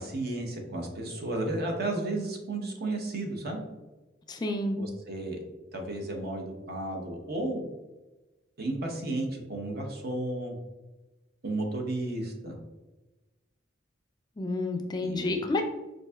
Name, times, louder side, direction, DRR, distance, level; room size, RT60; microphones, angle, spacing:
voice 1, 0.0-3.6 4.8-5.4 5.7-7.6 8.6-10.6 11.4-12.5 15.0-15.4, right 2 dB, 55° right, 2 dB, 0.7 m, -33 dB
voice 2, 4.3-4.8 14.4-15.7, left 2 dB, 20° left, 4 dB, 0.3 m, -30 dB
4.6 x 2.6 x 2.2 m, 1.1 s
head